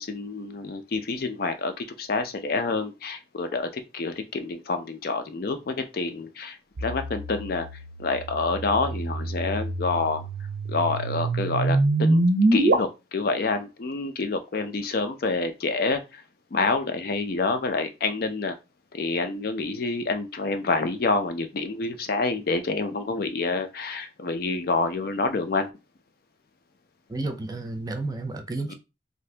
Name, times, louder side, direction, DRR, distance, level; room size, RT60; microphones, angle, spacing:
voice 1, 0.0-7.7 8.0-10.3 10.7-12.3 12.5-16.2 16.5-18.6 18.9-25.7 28.7-28.8, left 3 dB, 55° left, 0.5 m, -28 dB
sound 1, 6.8-12.7, right 2 dB, 80° right, 0.6 m, -25 dB
voice 2, 27.1-28.7, right 2 dB, 20° right, 0.4 m, -31 dB
2.8 x 2.6 x 3.2 m
head